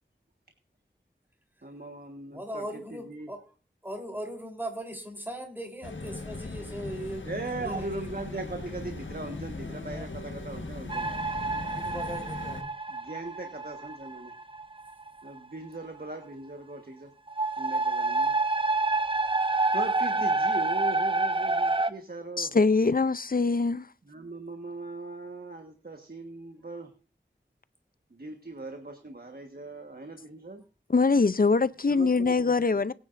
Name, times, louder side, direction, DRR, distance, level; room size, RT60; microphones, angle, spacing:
voice 1, 1.6-2.8 3.1-3.3 7.2-11.1 12.9-14.3 15.2-17.1 17.6-18.3 19.7-22.5 24.1-26.9 28.1-30.6 31.9-32.5, right 2 dB, 50° right, 1.4 m, -39 dB
voice 2, 2.3-3.4 3.8-7.3 7.6-7.8 9.9-10.1 11.6-12.7, right 1 dB, 10° right, 3.7 m, -38 dB
sound 1, 5.8-12.6, left 3 dB, 80° left, 1.5 m, -39 dB
sound 2, 10.9-15.4 17.3-21.9, right 3 dB, 25° right, 0.8 m, -28 dB
voice 3, 22.4-23.9 30.9-32.9, left 4 dB, 50° left, 0.5 m, -23 dB
21.5 x 9.6 x 2.6 m
wide cardioid pair, 50°, 19 cm